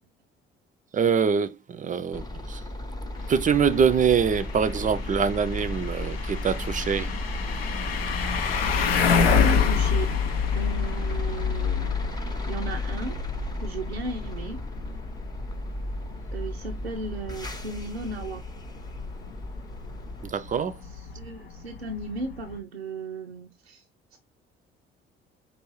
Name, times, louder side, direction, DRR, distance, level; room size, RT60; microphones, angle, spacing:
voice 1, 0.9-2.6 3.3-7.1 20.2-20.8, right 6 dB, 25° right, 0.5 m, -24 dB
sound 1, 2.1-20.3, left 1 dB, 15° left, 0.7 m, -34 dB
sound 2, 3.2-22.6, left 6 dB, 80° left, 0.6 m, -29 dB
voice 2, 9.2-10.1 10.5-12.0 12.5-13.2 13.6-14.6 16.3-18.4 20.9-23.8 24.1-24.2, right 2 dB, 90° right, 0.5 m, -35 dB
5.4 x 2.9 x 3.0 m
figure-of-eight pair, 50°, 30 cm